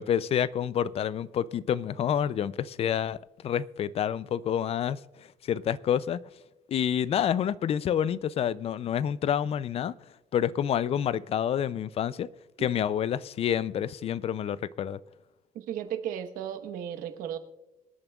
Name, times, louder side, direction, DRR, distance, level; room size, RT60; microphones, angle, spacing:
voice 1, 0.0-3.2 3.4-6.2 6.7-9.9 10.3-12.3 12.6-15.0, left 9 dB, 45° left, 0.4 m, -28 dB
voice 2, 15.5-17.4, right 10 dB, 90° right, 1.1 m, -35 dB
26.0 x 8.8 x 2.3 m
cardioid pair, 120°, 14 cm